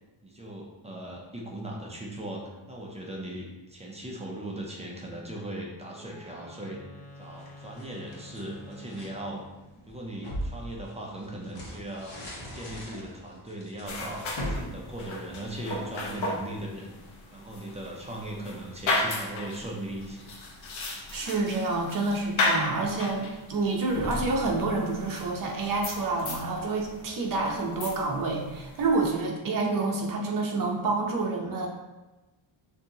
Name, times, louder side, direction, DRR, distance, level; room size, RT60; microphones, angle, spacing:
voice 1, 0.2-6.8 7.2-9.4 9.9-12.2 12.5-16.9 17.3-20.3, right 1 dB, 15° right, -2 dB, 0.4 m, -38 dB
Wind instrument woodwind instrument, 5.9-9.6, left 1 dB, 35° left, 0.9 m, -49 dB
sound 1, 7.2-9.2 9.7-15.7, equal, 50° left, 1.2 m, -40 dB
sound 2, 13.9-29.1, left 2 dB, 80° left, 1.0 m, -35 dB
voice 2, 21.1-31.7, right 3 dB, 45° right, 0 dB, 0.8 m, -28 dB
6.5 x 2.7 x 2.8 m, 1.1 s
wide cardioid pair, 180°, 47 cm